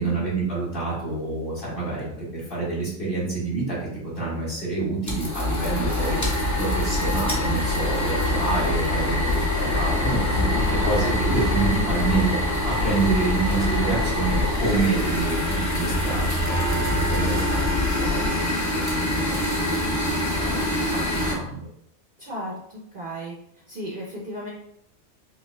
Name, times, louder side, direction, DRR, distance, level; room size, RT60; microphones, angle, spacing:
voice 1, 0.0-12.4 12.6-18.6 18.9-21.7, right 3 dB, 40° left, -8 dB, 1.7 m, -28 dB
sound 1, 5.1-21.3, equal, 20° left, 0.5 m, -26 dB
sound 2, 5.4-18.3, left 2 dB, 65° left, 1.8 m, -28 dB
voice 2, 22.2-23.3 23.7-24.5, equal, 50° right, -4 dB, 0.7 m, -34 dB
5.5 x 2.5 x 2.2 m, 0.73 s
omnidirectional pair, 1.4 m